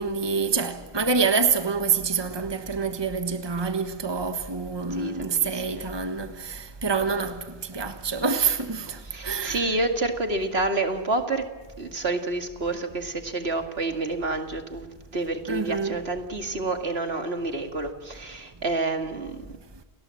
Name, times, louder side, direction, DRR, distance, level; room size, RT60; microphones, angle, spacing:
voice 1, 0.0-9.8 15.5-16.0, right 5 dB, 25° right, 1.4 m, -27 dB
voice 2, 5.0-5.9 9.1-11.5 11.8-14.9 15.1-19.4, right 2 dB, 70° right, 2.4 m, -28 dB
29.5 x 20.0 x 7.7 m
omnidirectional pair, 1.1 m